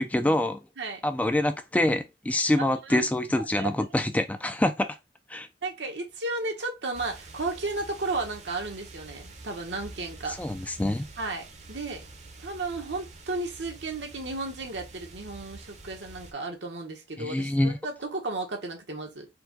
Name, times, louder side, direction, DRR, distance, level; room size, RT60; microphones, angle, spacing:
voice 1, 0.0-0.6 1.0-4.9 5.3-5.5 10.4-11.0 17.2-17.8, left 1 dB, 10° left, 0.3 m, -25 dB
voice 2, 2.6-3.0 3.4-3.7 5.6-10.4 11.2-12.0 12.4-19.3, right 3 dB, 80° right, 1.2 m, -34 dB
sound 1, 6.9-16.3, right 2 dB, 40° right, 0.8 m, -47 dB
4.4 x 2.3 x 3.9 m
head